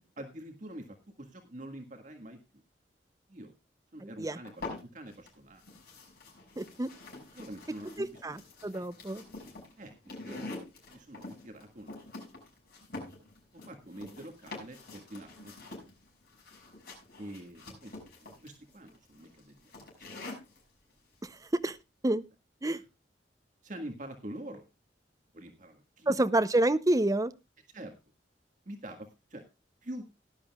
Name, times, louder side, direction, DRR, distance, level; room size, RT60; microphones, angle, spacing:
voice 1, 0.2-2.6 3.3-3.5 3.9-5.6 7.3-8.4 8.7-8.9 9.8-10.5 10.9-11.9 13.6-15.9 17.2-19.7 22.7-22.9 23.6-24.6 25.3-26.2 27.7-28.0 28.6-29.4 29.8-30.0, right 1 dB, 45° right, 4 dB, 1.7 m, -46 dB
voice 2, 4.0-4.4 6.6-6.9 8.0-9.2 21.6-21.8 22.0-22.2 22.6-22.8 26.1-27.3, right 1 dB, 20° right, 13 dB, 0.6 m, -28 dB
sound 1, 4.4-5.3 5.6-20.6, left 2 dB, 60° left, 6.0 m, -46 dB
18.0 x 11.0 x 2.3 m, 0.25 s
head